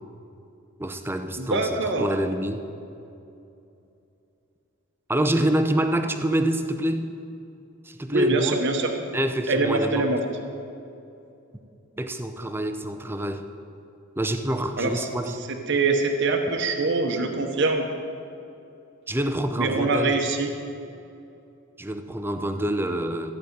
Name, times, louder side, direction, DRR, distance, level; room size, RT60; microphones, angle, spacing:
voice 1, 0.8-2.6 5.1-7.0 7.8-8.6 9.1-10.1 12.0-13.4 14.2-15.4 19.1-20.2 21.8-23.3, right 1 dB, 10° right, 7 dB, 0.6 m, -26 dB
voice 2, 1.4-2.1 8.1-8.9 9.5-10.2 14.8-15.1 15.5-17.8 19.6-20.5, right 3 dB, 55° right, 3 dB, 1.0 m, -24 dB
14.5 x 9.3 x 5.2 m, 2.7 s
head